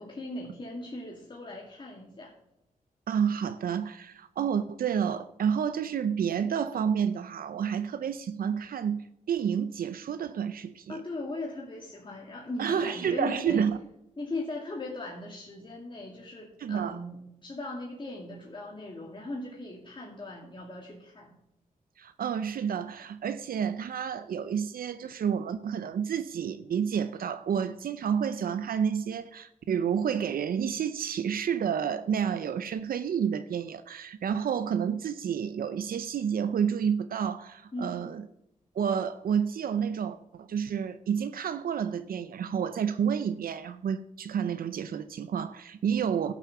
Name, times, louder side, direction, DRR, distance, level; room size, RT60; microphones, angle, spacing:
voice 1, 0.0-2.3 10.9-13.7 14.2-21.4 37.7-38.1, left 2 dB, 35° left, 2.4 m, -38 dB
voice 2, 3.1-11.0 12.6-13.8 16.6-17.0 22.0-38.3 38.7-46.3, right 7 dB, 85° right, 0.6 m, -30 dB
12.0 x 6.9 x 7.0 m
cardioid pair, 80°, 15 cm